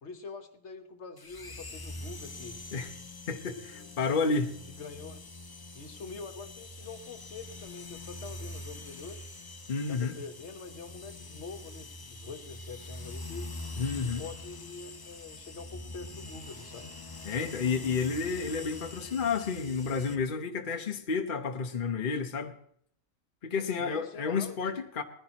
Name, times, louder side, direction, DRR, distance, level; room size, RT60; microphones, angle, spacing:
voice 1, 0.0-2.6 3.4-3.9 4.7-5.3 5.7-9.2 9.9-13.5 13.9-16.9 23.8-24.7, left 4 dB, 60° left, 1.3 m, -45 dB
sound 1, 1.2-20.2, left 2 dB, 25° left, 0.5 m, -44 dB
voice 2, 3.3-4.5 9.7-10.1 13.8-14.2 17.2-22.5 23.4-25.0, left 5 dB, 45° left, 0.9 m, -31 dB
20.0 x 15.0 x 2.9 m
omnidirectional pair, 1.4 m